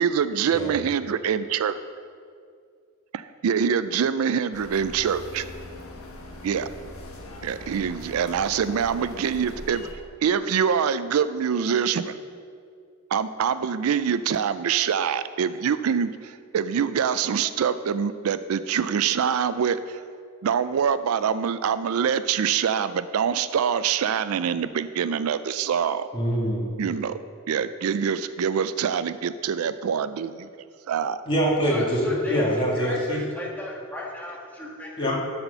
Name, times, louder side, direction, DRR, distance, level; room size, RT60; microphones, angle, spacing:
voice 1, 0.0-1.8 3.1-5.5 6.4-6.7 7.4-9.9 10.2-12.2 13.1-20.0 20.4-26.1 26.8-27.2 27.5-30.5 30.9-31.2, right 7 dB, 80° right, 13 dB, 0.4 m, -25 dB
sound 1, 4.5-9.9, left 1 dB, 75° left, 1.4 m, -41 dB
voice 2, 26.1-26.7 31.3-33.2 35.0-35.2, equal, 25° left, -4 dB, 1.9 m, -24 dB
voice 3, 31.7-35.2, left 1 dB, 10° left, -4 dB, 1.7 m, -33 dB
12.0 x 4.3 x 6.8 m, 2.2 s
head